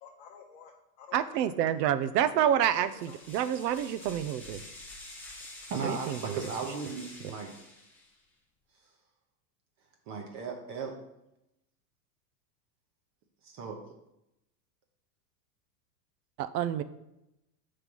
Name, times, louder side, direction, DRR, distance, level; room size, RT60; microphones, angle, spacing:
voice 1, 0.0-1.9 2.1-3.7, left 7 dB, 50° left, -1 dB, 0.8 m, -52 dB
voice 2, 1.1-4.6 5.8-6.4 16.4-16.8, right 10 dB, 75° right, 13 dB, 0.6 m, -28 dB
sound 1, 2.6-8.2, left 2 dB, 5° left, 0.4 m, -48 dB
voice 3, 5.7-7.5 10.1-10.9 13.4-13.8, right 5 dB, 35° right, 2 dB, 0.8 m, -36 dB
5.8 x 3.3 x 5.3 m, 0.86 s
supercardioid pair, 135°, 50 cm